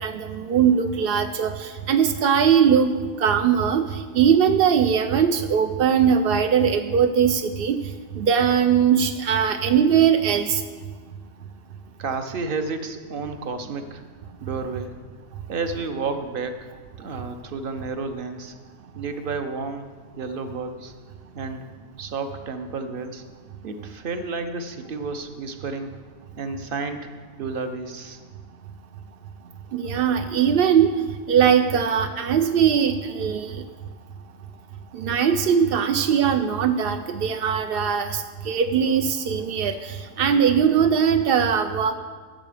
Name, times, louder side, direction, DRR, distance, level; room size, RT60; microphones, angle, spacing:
voice 1, 0.0-7.8 8.1-10.6 29.7-30.9 31.3-33.6 34.9-41.9, right 7 dB, 70° right, 7 dB, 0.5 m, -20 dB
voice 2, 12.0-14.0 14.4-14.9 15.5-16.7 17.0-18.5 18.9-19.8 20.1-20.9 21.3-21.6 22.0-23.2 23.6-25.9 26.4-27.1 27.4-28.2, right 4 dB, 45° right, 8 dB, 0.8 m, -31 dB
14.0 x 7.4 x 5.0 m, 1.5 s
omnidirectional pair, 1.5 m